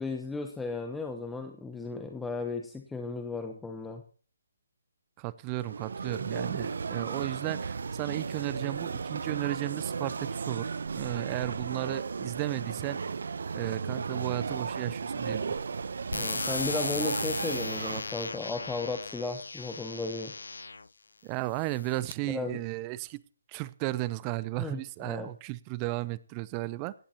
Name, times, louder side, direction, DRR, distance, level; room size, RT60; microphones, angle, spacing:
voice 1, 0.0-4.0 16.1-20.3 22.2-22.6 24.6-25.3, left 3 dB, 5° left, 5 dB, 0.9 m, -35 dB
voice 2, 5.2-10.7 10.9-13.0 13.5-15.6 21.2-23.2 23.5-26.9, right 19 dB, 20° right, 19 dB, 0.5 m, -34 dB
sound 1, 5.6-18.0, right 5 dB, 60° right, 0.8 m, -35 dB
sound 2, 16.1-20.9 21.6-22.1, left 3 dB, 75° left, 0.7 m, -36 dB
17.5 x 16.0 x 2.9 m, 0.40 s
figure-of-eight pair, 150°, 0 cm